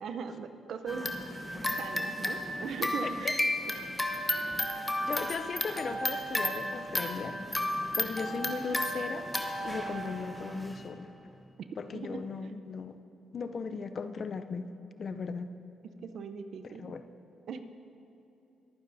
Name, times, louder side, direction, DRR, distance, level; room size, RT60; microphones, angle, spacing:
voice 1, 0.0-1.1 1.8-3.5 3.9-4.0 5.9-6.0 11.9-12.2 16.0-16.9 17.5-17.6, right 6 dB, 70° right, 9 dB, 0.7 m, -39 dB
sound 1, 0.9-10.9, left 1 dB, 15° left, 1.1 m, -33 dB
voice 2, 5.0-7.4 7.9-9.3 9.6-11.1 11.8-13.0 13.3-14.7 15.0-15.5 16.6-17.0, left 5 dB, 50° left, 10 dB, 0.5 m, -37 dB
22.5 x 9.4 x 2.7 m, 2.9 s
supercardioid pair, 65°, 0 cm